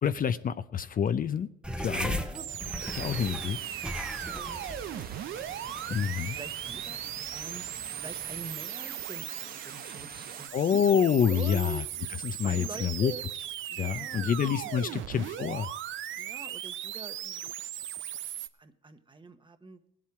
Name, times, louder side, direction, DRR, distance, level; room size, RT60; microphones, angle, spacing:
voice 1, 0.0-1.5 1.8-2.2 2.9-3.6 5.9-6.4 10.5-11.8 12.1-13.1 13.8-15.7, left 8 dB, 45° left, 12 dB, 0.5 m, -27 dB
sound 1, 1.6-8.5, equal, 5° right, 1.0 m, -39 dB
sound 2, 2.3-18.5, right 11 dB, 75° right, 0.7 m, -38 dB
sound 3, 2.8-10.5, right 6 dB, 50° right, 1.2 m, -46 dB
voice 2, 4.2-6.0 6.3-7.7 7.9-10.8 11.3-12.1 12.4-13.2 13.7-14.5 14.8-15.0 16.1-17.5 18.6-19.9, right 3 dB, 25° right, 9 dB, 1.2 m, -45 dB
18.5 x 7.5 x 4.7 m, 0.81 s
cardioid pair, 90°, 20 cm